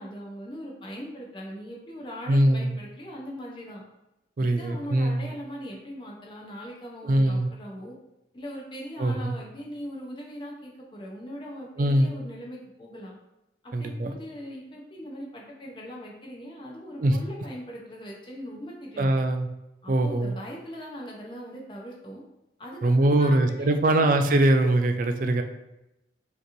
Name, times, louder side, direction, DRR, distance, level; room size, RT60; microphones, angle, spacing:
voice 1, 0.0-3.8 4.4-7.9 8.3-13.2 13.6-19.2 19.8-22.2 22.6-24.0, equal, 25° left, -2 dB, 0.7 m, -40 dB
voice 2, 2.3-2.8 4.4-5.3 7.0-7.5 9.0-9.3 11.8-12.1 13.7-14.1 17.0-17.2 19.0-19.5 19.9-20.3 22.8-25.4, right 1 dB, 45° right, 7 dB, 0.3 m, -22 dB
5.1 x 2.9 x 2.6 m, 0.91 s
head